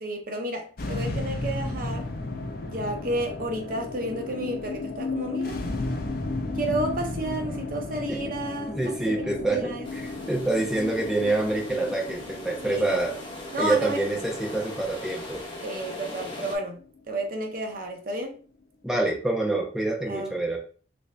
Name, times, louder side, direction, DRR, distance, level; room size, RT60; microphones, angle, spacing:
voice 1, 0.0-2.1 2.6-5.6 6.5-9.9 12.6-13.0 13.5-14.0 15.6-18.4 20.1-20.3, right 1 dB, 55° right, 0.7 m, -32 dB
sound 1, 0.8-17.2, left 2 dB, 55° left, 0.5 m, -34 dB
voice 2, 8.7-10.0 10.3-13.1 13.6-15.4 18.8-20.6, right 2 dB, 5° right, 0.6 m, -26 dB
sound 2, 9.8-16.6, left 2 dB, 30° left, 0.9 m, -40 dB
3.3 x 2.6 x 3.2 m
head